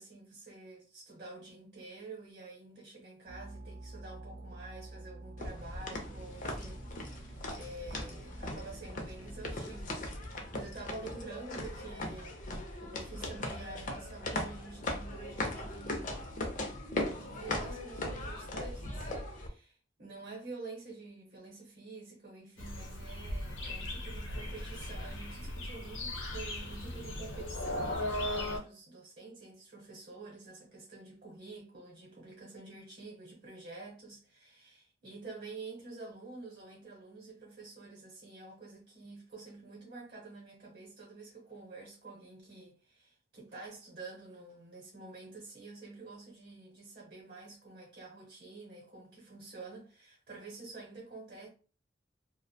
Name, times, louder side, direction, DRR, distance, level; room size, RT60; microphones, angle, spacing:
voice 1, 0.0-12.4 12.8-16.3 17.2-51.5, right 3 dB, 45° right, 0.8 m, -48 dB
sound 1, 3.3-16.9, right 2 dB, 80° right, 0.6 m, -52 dB
sound 2, 5.4-19.5, left 1 dB, 40° left, 0.5 m, -39 dB
sound 3, 22.6-28.6, left 1 dB, 80° left, 0.7 m, -37 dB
2.4 x 2.1 x 2.6 m
head